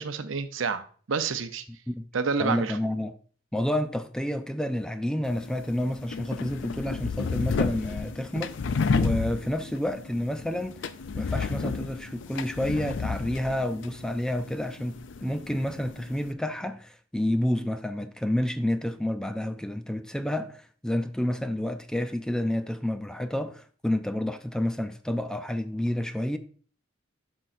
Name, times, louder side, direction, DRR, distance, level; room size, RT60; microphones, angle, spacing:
voice 1, 0.0-1.6 2.1-2.8, right 5 dB, 85° right, 0.7 m, -29 dB
voice 2, 2.4-3.1 3.5-8.5 8.9-10.8 11.1-26.4, left 1 dB, 5° left, 0.4 m, -29 dB
sound 1, 5.2-16.3, left 4 dB, 65° left, 0.4 m, -32 dB
9.9 x 6.2 x 2.6 m
head